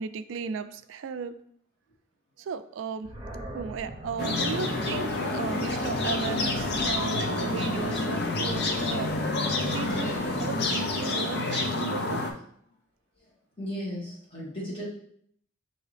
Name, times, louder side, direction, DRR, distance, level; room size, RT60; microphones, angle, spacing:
voice 1, 0.0-1.4 2.4-3.1 3.5-9.1 9.7-12.2, right 5 dB, 75° right, 12 dB, 0.3 m, -35 dB
Animal, 3.0-10.2, equal, 25° right, 0.7 m, -42 dB
sound 1, 4.2-12.3, left 2 dB, 55° left, 0.5 m, -28 dB
voice 2, 13.6-14.8, equal, 25° left, -6 dB, 1.5 m, -35 dB
5.6 x 2.7 x 3.3 m, 0.65 s
head